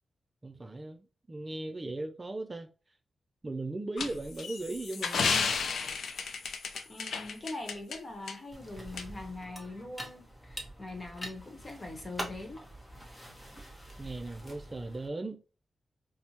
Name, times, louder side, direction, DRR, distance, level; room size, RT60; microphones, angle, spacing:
voice 1, 0.4-2.7 3.4-5.5 14.0-15.4, right 2 dB, 25° right, 0.3 m, -38 dB
sound 1, 4.0-8.0 8.3-8.4 9.0-9.1, left 5 dB, 80° left, 0.4 m, -32 dB
voice 2, 6.9-12.7 12.9-13.3, left 2 dB, 30° left, 1.0 m, -42 dB
sound 2, 8.5-15.1, equal, 5° left, 0.9 m, -45 dB
4.3 x 2.1 x 2.8 m
wide cardioid pair, 105°, 0 cm